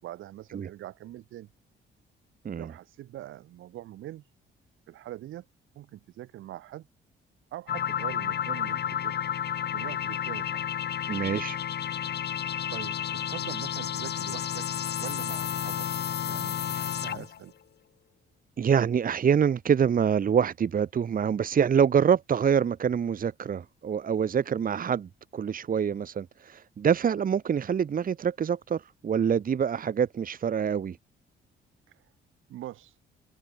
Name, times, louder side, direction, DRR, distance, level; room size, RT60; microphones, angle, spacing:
voice 1, 0.0-1.5 2.6-4.2 4.9-5.4 5.7-6.9 7.5-9.4 9.7-10.7 12.7-14.7 15.0-15.9 16.2-17.5 31.9-32.0 32.5-32.9, right 14 dB, 85° right, 4.7 m, -43 dB
sound 1, 7.7-17.4, left 9 dB, 55° left, 1.5 m, -31 dB
voice 2, 11.1-11.6 18.6-31.0, right 7 dB, 45° right, 1.4 m, -25 dB
cardioid pair, 90°, 20 cm